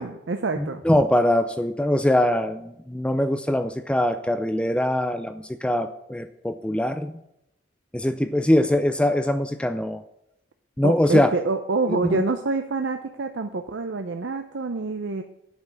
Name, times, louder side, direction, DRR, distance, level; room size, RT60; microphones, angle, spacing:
voice 1, 0.0-0.8 10.8-15.2, right 3 dB, 65° right, 7 dB, 0.6 m, -27 dB
voice 2, 0.6-7.1 7.9-10.0 10.8-11.3 11.9-12.2, left 1 dB, 5° left, 9 dB, 0.4 m, -22 dB
9.0 x 5.7 x 8.2 m, 0.83 s
head